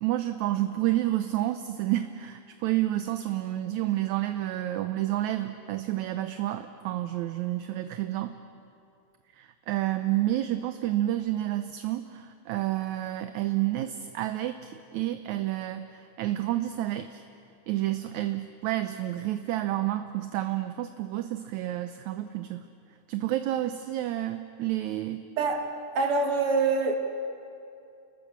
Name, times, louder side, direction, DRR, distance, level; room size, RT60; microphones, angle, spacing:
voice 1, 0.0-8.4 9.4-17.2 17.7-22.6 23.1-25.2, right 14 dB, 75° right, 9 dB, 1.9 m, -30 dB
voice 2, 25.4-25.7 25.9-27.0, right 4 dB, 50° right, 4 dB, 2.5 m, -25 dB
30.0 x 20.0 x 7.4 m, 2.5 s
omnidirectional pair, 3.8 m